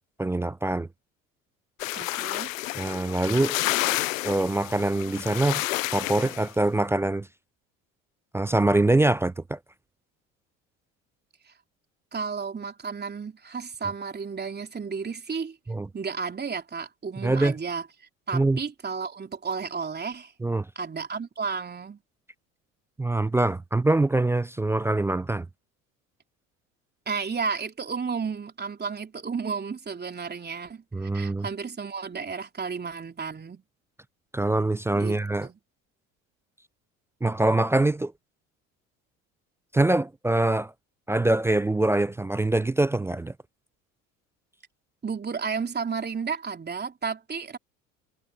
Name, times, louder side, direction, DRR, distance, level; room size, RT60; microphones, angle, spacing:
voice 1, 0.2-0.9 2.8-3.9 4.2-5.6 5.9-7.3 8.3-9.6 15.7-15.9 17.2-17.5 18.3-18.6 20.4-20.7 23.0-25.5 30.9-31.5 34.3-35.5 37.2-38.1 39.7-40.7 41.1-43.3, right 2 dB, 5° right, 0.3 m, -24 dB
sound 1, 1.8-6.5, left 17 dB, 80° left, 0.5 m, -30 dB
voice 2, 1.9-2.5 11.5-11.6 12.1-15.6 15.9-17.8 18.3-20.3 20.8-22.0 27.1-33.6 34.9-35.2 35.4-35.6 45.0-47.6, right 5 dB, 25° right, 3.4 m, -32 dB
hypercardioid pair, 65°, 39 cm